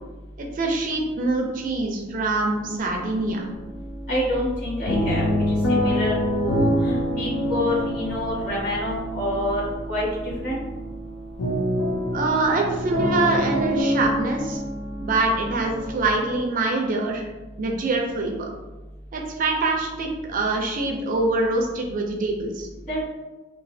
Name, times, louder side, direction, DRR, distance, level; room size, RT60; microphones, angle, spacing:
voice 1, 0.5-3.5 12.1-14.6 15.0-17.2 17.6-18.5 19.1-22.7, right 2 dB, 45° right, 2 dB, 0.4 m, -24 dB
sound 1, 2.6-3.4 3.6-16.4, equal, 85° left, 0.6 m, -26 dB
voice 2, 4.1-9.6 9.9-10.6 22.9-23.0, left 1 dB, 45° left, -8 dB, 1.4 m, -27 dB
3.0 x 2.3 x 2.6 m, 1.1 s
head